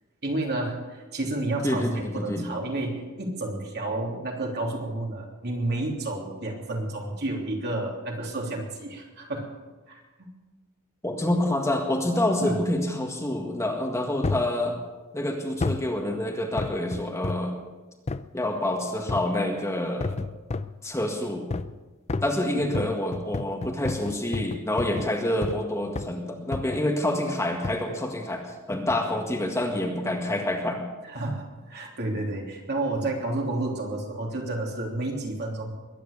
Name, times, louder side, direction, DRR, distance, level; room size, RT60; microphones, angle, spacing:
voice 1, 0.2-9.5 9.9-10.3 12.4-12.6 22.5-22.7 31.0-35.7, right 2 dB, 50° right, 0 dB, 3.1 m, -31 dB
voice 2, 1.6-2.5 11.0-14.8 15.1-17.5 18.3-20.1 20.8-21.5 22.2-28.4 28.7-30.8, left 1 dB, 15° left, 1 dB, 1.8 m, -27 dB
sound 1, 14.2-14.5 15.6-15.9 16.6-17.5 18.1-18.3 19.1-19.4 20.0-20.8 21.5-21.8 22.1-25.7 25.9-26.2 26.5-26.9 27.6-27.9 28.7-29.0 29.6-29.7, left 3 dB, 30° left, 0.5 m, -32 dB
22.0 x 9.7 x 6.7 m, 1.2 s
head